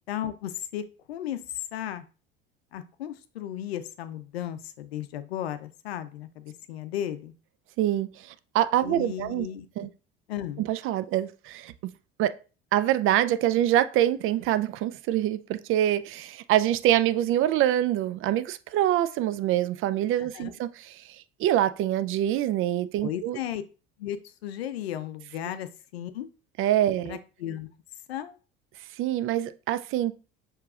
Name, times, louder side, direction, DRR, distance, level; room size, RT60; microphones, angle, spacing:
voice 1, 0.1-2.0 2.7-7.3 8.8-9.9 10.3-10.6 20.2-20.5 23.0-23.6 24.0-26.3 27.0-27.7 28.1-28.3, left 11 dB, 80° left, 0.5 m, -35 dB
voice 2, 7.8-9.5 9.8-9.9 10.6-11.7 12.2-12.4 12.7-23.4 26.6-27.2 29.0-30.2, right 12 dB, 45° right, 0.4 m, -25 dB
6.5 x 3.0 x 2.4 m
hypercardioid pair, 60°, 31 cm